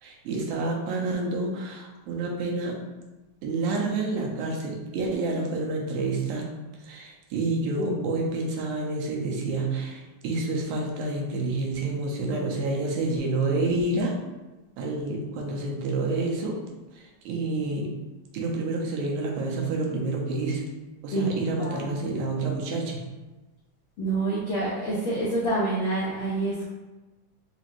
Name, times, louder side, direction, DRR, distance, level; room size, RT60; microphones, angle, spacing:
voice 1, 0.0-2.8 3.4-6.5 6.8-14.1 14.8-16.6 17.0-17.9 18.3-20.6 21.0-23.0, right 2 dB, 80° right, 0 dB, 2.0 m, -28 dB
voice 2, 21.1-22.0 24.0-26.6, right 2 dB, 70° left, -9 dB, 1.2 m, -27 dB
4.9 x 2.5 x 2.9 m, 1.1 s
omnidirectional pair, 3.4 m